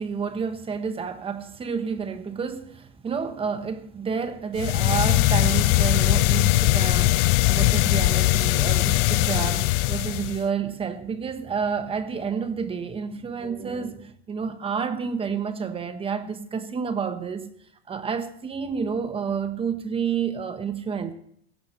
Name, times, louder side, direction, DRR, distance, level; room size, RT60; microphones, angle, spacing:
voice 1, 0.0-17.5 17.9-21.1, right 6 dB, 15° right, 1.1 m, -29 dB
sound 1, 4.5-10.5, left 19 dB, 45° left, 0.5 m, -20 dB
18.0 x 16.5 x 3.1 m
supercardioid pair, 145°, 35 cm